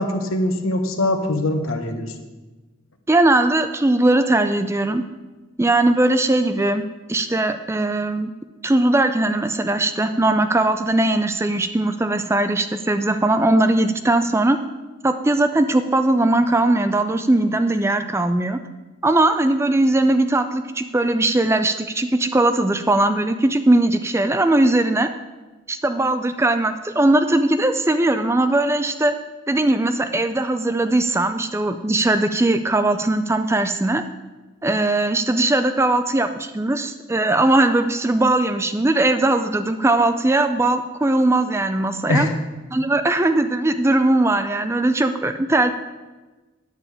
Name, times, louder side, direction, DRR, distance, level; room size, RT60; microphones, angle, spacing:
voice 1, 0.0-2.1 42.1-42.3, left 1 dB, 80° left, 6 dB, 1.1 m, -22 dB
voice 2, 3.1-5.0 5.6-6.8 7.1-8.3 8.6-14.6 15.0-18.6 19.0-25.1 25.7-29.1 29.5-34.0 34.6-42.3 42.7-45.7, right 2 dB, 15° right, 9 dB, 0.4 m, -19 dB
9.9 x 8.6 x 4.9 m, 1.2 s
head